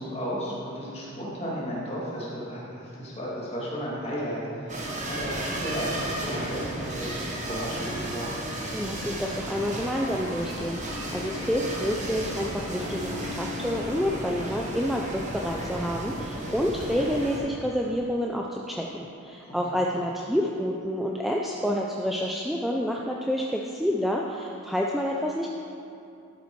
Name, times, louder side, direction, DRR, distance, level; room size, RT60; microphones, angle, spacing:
voice 1, 0.0-8.3 19.4-19.8, equal, 30° left, -6 dB, 2.0 m, -34 dB
sound 1, 4.7-17.4, right 1 dB, 35° right, 1.1 m, -33 dB
voice 2, 8.7-25.5, equal, ahead, -2 dB, 0.3 m, -28 dB
12.0 x 5.5 x 4.5 m, 2.6 s
head